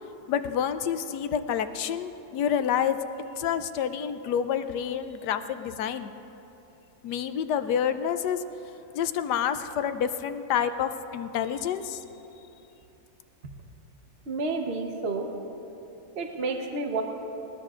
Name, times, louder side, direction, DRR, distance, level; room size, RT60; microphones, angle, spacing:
voice 1, 0.3-3.0 3.4-6.1 7.0-8.4 8.9-12.0, left 8 dB, 75° left, 10 dB, 1.1 m, -28 dB
voice 2, 14.3-15.3 16.2-17.0, right 3 dB, 45° right, 3 dB, 1.1 m, -30 dB
20.5 x 20.0 x 2.5 m, 3.0 s
omnidirectional pair, 1.8 m